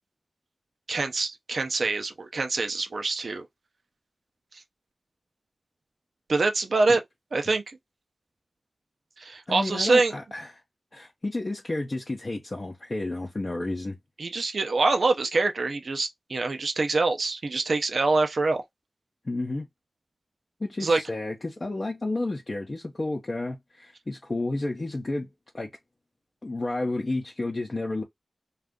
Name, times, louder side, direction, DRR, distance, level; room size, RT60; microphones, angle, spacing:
voice 1, 0.9-3.5 4.5-4.6 6.3-7.0 7.3-7.8 9.2-10.1 14.2-18.6 20.8-21.0, right 3 dB, 75° right, 0.5 m, -25 dB
voice 2, 9.5-10.5 10.9-14.0 19.2-19.7 20.6-25.3 25.5-25.7 26.4-28.0, left 2 dB, 40° left, 0.6 m, -31 dB
2.6 x 2.4 x 3.5 m
wide cardioid pair, 80°, 0 cm